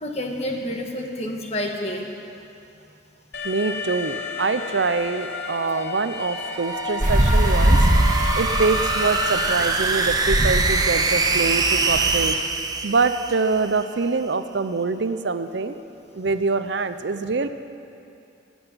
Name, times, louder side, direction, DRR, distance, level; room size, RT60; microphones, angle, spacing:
voice 1, 0.0-2.1, left 1 dB, 35° left, 2 dB, 1.6 m, -29 dB
Alarm, 3.3-9.6, left 5 dB, 55° left, 1.1 m, -32 dB
voice 2, 3.4-7.9 8.3-12.4 12.8-15.7 16.1-17.5, right 4 dB, 65° right, 10 dB, 0.6 m, -24 dB
sound 1, 6.4-13.8, right 4 dB, 20° right, 0.6 m, -24 dB
sound 2, 7.0-12.2, right 1 dB, 40° right, 1.7 m, -22 dB
16.5 x 8.0 x 9.6 m, 2.6 s
head